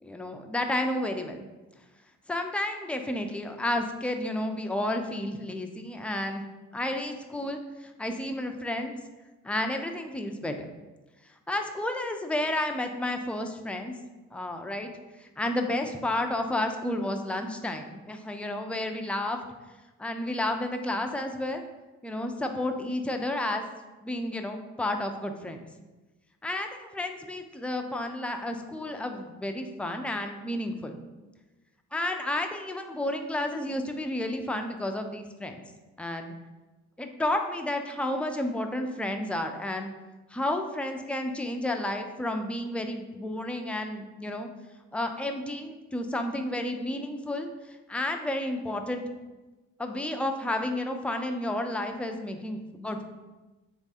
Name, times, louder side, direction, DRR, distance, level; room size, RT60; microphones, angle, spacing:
voice 1, 0.0-1.4 2.3-6.4 6.7-9.0 9.4-10.5 11.5-13.9 14.3-14.9 15.2-19.4 20.0-21.6 22.0-23.7 24.0-25.7 26.4-31.0 31.9-35.6 36.0-36.3 37.0-39.9 40.3-44.5 44.9-47.5 47.9-49.0 49.8-53.0, left 1 dB, 5° left, 5 dB, 0.4 m, -31 dB
3.6 x 3.2 x 4.1 m, 1.1 s
cardioid pair, 90°, 30 cm